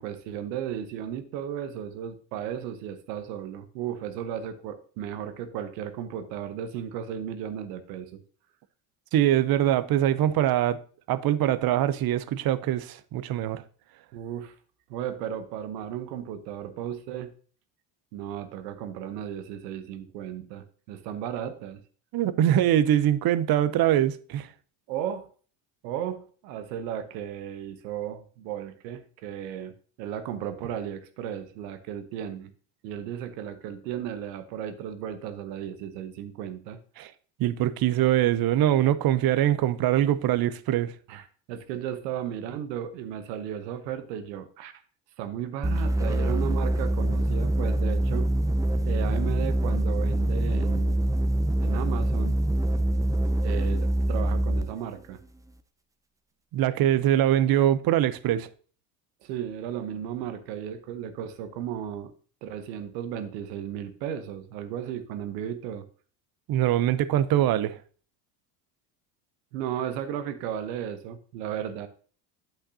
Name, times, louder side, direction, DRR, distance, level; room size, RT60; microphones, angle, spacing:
voice 1, 0.0-8.2 14.1-14.6 14.9-17.3 18.1-21.8 24.9-25.3 25.8-32.5 32.8-36.8 41.1-44.7 45.2-48.3 48.8-51.0 51.6-52.4 53.4-55.2 59.2-62.1 62.4-65.9 69.5-71.9, right 9 dB, 85° right, 1.0 m, -35 dB
voice 2, 9.1-10.8 11.1-13.6 22.1-24.5 37.0-37.1 37.4-40.9 56.5-58.5 66.5-67.8, right 12 dB, 45° right, 0.6 m, -23 dB
sound 1, 45.6-54.7, right 1 dB, 5° right, 0.5 m, -25 dB
8.9 x 7.9 x 2.7 m
supercardioid pair, 90°, 49 cm